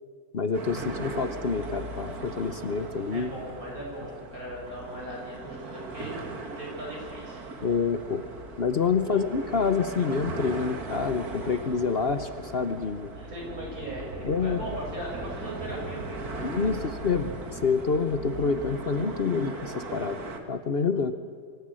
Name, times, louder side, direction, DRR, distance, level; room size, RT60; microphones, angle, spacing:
voice 1, 0.3-3.3 7.6-8.2 8.6-13.1 14.2-14.6 16.4-20.2 20.5-21.1, left 5 dB, 45° left, 10 dB, 1.0 m, -27 dB
sound 1, 0.5-20.4, right 3 dB, 90° right, 2.5 m, -38 dB
voice 2, 3.1-7.4 9.0-9.2 13.1-16.7, right 1 dB, 70° right, -2 dB, 7.7 m, -39 dB
24.5 x 15.5 x 9.0 m, 2.1 s
omnidirectional pair, 1.6 m